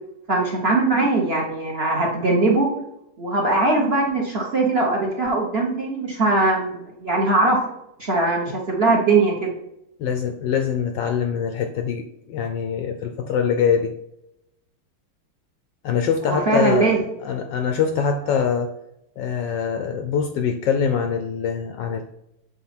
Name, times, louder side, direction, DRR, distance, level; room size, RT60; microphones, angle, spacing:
voice 1, 0.3-2.7 3.2-7.6 8.0-9.5 16.2-17.0, right 3 dB, 35° right, 0 dB, 1.1 m, -20 dB
voice 2, 10.0-13.9 15.8-16.9 17.2-18.7 19.2-22.0, left 7 dB, 75° left, 7 dB, 1.1 m, -23 dB
6.9 x 4.5 x 4.3 m, 0.84 s
omnidirectional pair, 2.4 m